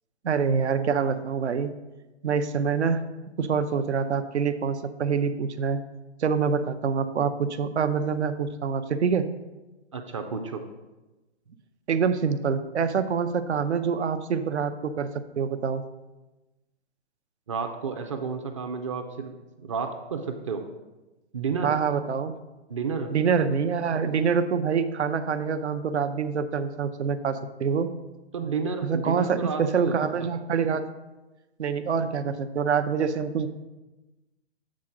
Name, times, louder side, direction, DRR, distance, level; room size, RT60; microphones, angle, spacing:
voice 1, 0.2-1.7 2.2-3.0 3.4-5.8 6.2-9.3 11.9-15.1 15.4-15.8 21.6-22.4 23.1-27.9 28.8-30.8 31.6-33.5, right 6 dB, 85° right, 11 dB, 0.7 m, -26 dB
voice 2, 9.9-10.6 17.5-19.3 19.6-20.6 21.3-21.7 22.7-23.1 28.3-30.0, right 5 dB, 30° right, 6 dB, 0.4 m, -31 dB
7.4 x 3.8 x 6.3 m, 1.1 s
hypercardioid pair, 145°, 33 cm